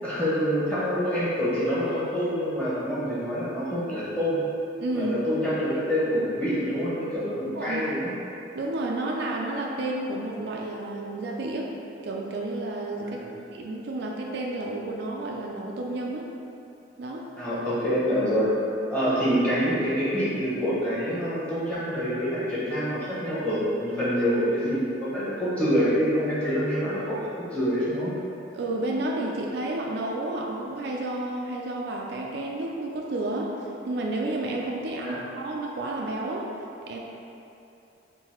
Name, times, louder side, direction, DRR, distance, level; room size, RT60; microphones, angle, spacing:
voice 1, 0.0-4.4 4.9-8.1 13.0-13.3 17.4-18.5 18.9-28.1 35.0-35.2, equal, 5° left, -11 dB, 1.0 m, -26 dB
voice 2, 4.8-5.2 7.6-7.8 8.5-11.7 12.0-13.2 13.5-16.3 17.0-17.3 28.5-36.5 36.8-37.0, right 2 dB, 55° right, -1 dB, 0.3 m, -31 dB
3.7 x 2.6 x 4.3 m, 2.9 s
head